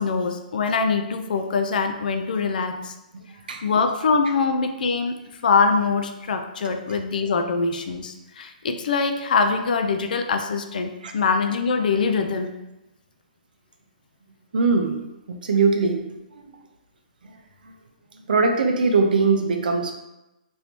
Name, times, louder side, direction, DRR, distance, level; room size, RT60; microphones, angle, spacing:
voice 1, 0.0-2.9 3.6-5.2 5.4-12.6, left 4 dB, 70° left, 6 dB, 0.3 m, -23 dB
voice 2, 14.5-15.0 15.3-16.0 16.3-16.4 18.3-19.9, right 4 dB, 80° right, 4 dB, 0.5 m, -21 dB
3.2 x 2.6 x 2.9 m, 0.96 s
hypercardioid pair, 150°, 5 cm